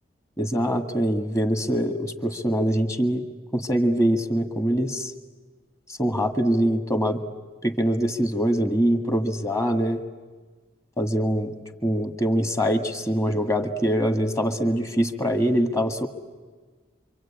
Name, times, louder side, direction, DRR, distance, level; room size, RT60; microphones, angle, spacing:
voice 1, 0.4-3.2 3.5-5.1 6.0-7.2 7.6-10.0 11.0-16.1, equal, 15° left, 6 dB, 1.9 m, -23 dB
27.0 x 25.0 x 8.8 m, 1.4 s
head